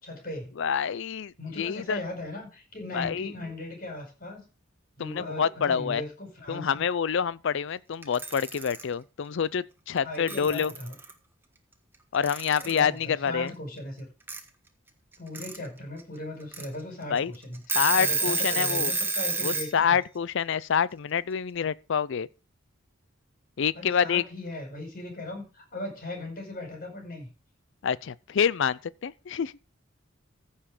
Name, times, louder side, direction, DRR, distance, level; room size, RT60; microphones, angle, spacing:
voice 1, 0.0-0.6 1.4-4.4 5.0-6.8 10.0-11.0 12.6-14.1 15.2-20.0 23.7-27.3, left 1 dB, 45° left, 5.2 m, -38 dB
voice 2, 0.6-2.0 2.9-3.3 5.0-6.0 6.5-10.7 12.1-13.5 17.1-17.3 17.7-18.9 19.4-22.3 23.6-24.2 27.8-29.5, left 7 dB, 65° left, 0.5 m, -27 dB
Alarm / Clock, 8.0-8.8 10.0-10.1 10.3-11.1 12.2-12.9 14.3-14.4 15.1-15.6 16.0-16.1 16.5-16.6 17.2-17.3 17.5-19.7, right 3 dB, 10° right, 1.3 m, -29 dB
15.0 x 5.6 x 5.0 m
head